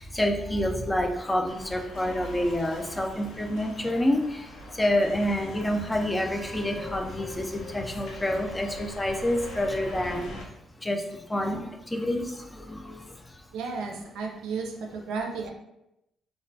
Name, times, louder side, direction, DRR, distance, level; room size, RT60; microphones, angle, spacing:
voice 1, 0.0-10.3 10.8-13.4, left 1 dB, 15° left, 3 dB, 0.3 m, -28 dB
sound 1, 1.4-10.4, left 1 dB, 75° left, 0.5 m, -42 dB
voice 2, 13.5-15.5, right 4 dB, 90° right, 1 dB, 0.4 m, -33 dB
2.2 x 2.1 x 2.6 m, 0.86 s
cardioid pair, 90°, 0 cm